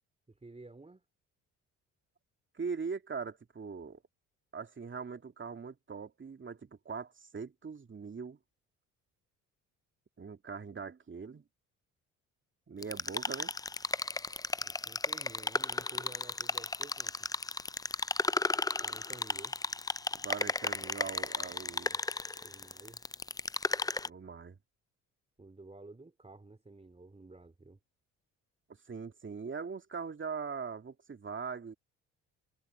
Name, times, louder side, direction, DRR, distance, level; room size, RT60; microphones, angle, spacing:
voice 1, 0.3-1.0 14.6-17.2 18.8-19.6 22.3-23.0 25.4-27.8, right 2 dB, 15° right, 3.8 m, -52 dB
voice 2, 2.5-4.0 4.5-8.4 10.2-11.4 12.7-13.5 20.1-22.0 24.0-24.6 28.9-31.7, right 5 dB, 30° right, 2.6 m, -41 dB
sound 1, 12.8-24.1, left 3 dB, 10° left, 0.5 m, -34 dB
hypercardioid pair, 55°, 36 cm